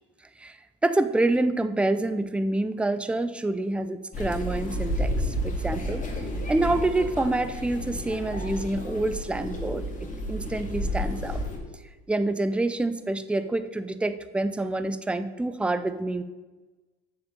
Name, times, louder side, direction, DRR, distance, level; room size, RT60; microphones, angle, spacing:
voice 1, 0.4-6.0 6.5-11.4 12.1-16.2, right 2 dB, 5° right, 11 dB, 0.5 m, -27 dB
sound 1, 4.1-11.6, equal, 25° left, 2.2 m, -31 dB
7.0 x 6.3 x 6.8 m, 1.2 s
hypercardioid pair, 80°, 30 cm